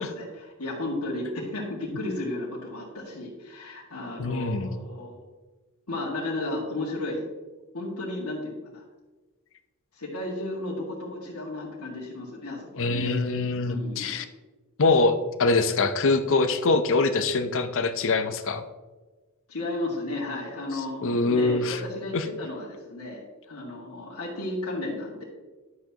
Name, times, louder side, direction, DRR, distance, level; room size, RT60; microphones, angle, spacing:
voice 1, 0.0-5.2 5.9-7.2 7.7-8.8 10.0-13.1 13.7-14.2 19.5-25.2, left 2 dB, 75° left, -6 dB, 2.0 m, -33 dB
voice 2, 4.2-4.7 12.8-14.2 14.8-18.6 20.7-21.8 22.1-22.3, left 3 dB, 60° left, 9 dB, 0.7 m, -24 dB
11.5 x 8.0 x 2.9 m, 1.2 s
head